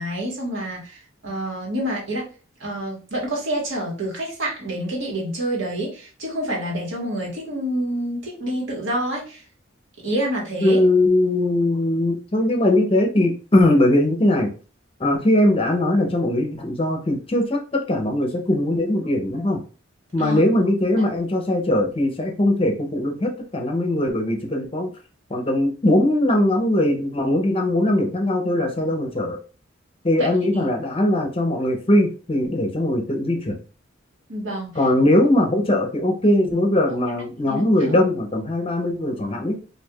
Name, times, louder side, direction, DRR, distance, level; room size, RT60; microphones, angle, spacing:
voice 1, 0.0-2.2 2.6-9.4 10.0-10.8 20.2-20.4 30.2-30.7 34.3-34.7 37.1-37.7, right 1 dB, 80° right, -3 dB, 1.6 m, -28 dB
voice 2, 10.6-14.5 15.0-17.6 17.9-19.6 20.1-24.9 25.3-29.4 30.0-33.6 34.8-39.6, left 1 dB, 30° left, 3 dB, 0.6 m, -20 dB
4.5 x 2.6 x 2.3 m, 0.36 s
head